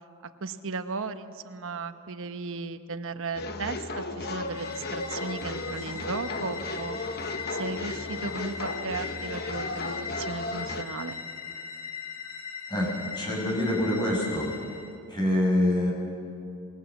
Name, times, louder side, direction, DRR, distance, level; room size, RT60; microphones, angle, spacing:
voice 1, 0.4-7.0 7.5-11.2, right 4 dB, 65° right, 9 dB, 1.1 m, -36 dB
sound 1, 3.3-10.8, left 2 dB, 45° left, 1.1 m, -35 dB
sound 2, 4.4-14.9, left 6 dB, 65° left, 1.9 m, -40 dB
voice 2, 12.7-14.5 15.1-15.9, left 1 dB, 20° left, -2 dB, 6.4 m, -25 dB
27.5 x 20.5 x 7.3 m, 2.5 s
head